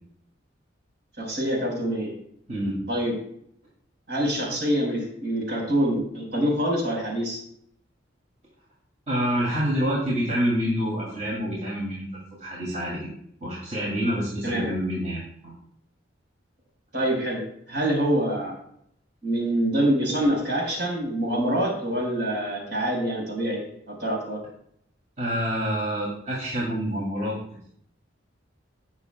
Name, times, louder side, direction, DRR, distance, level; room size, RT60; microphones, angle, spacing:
voice 1, 1.2-2.1 2.9-3.2 4.1-7.4 14.4-14.7 16.9-17.4 17.7-18.5 19.2-24.4, right 1 dB, 60° right, 0 dB, 4.3 m, -25 dB
voice 2, 9.1-12.1 12.4-13.1 13.4-15.5 25.2-27.4, equal, 35° right, -5 dB, 2.4 m, -27 dB
18.5 x 6.4 x 2.2 m, 0.69 s
head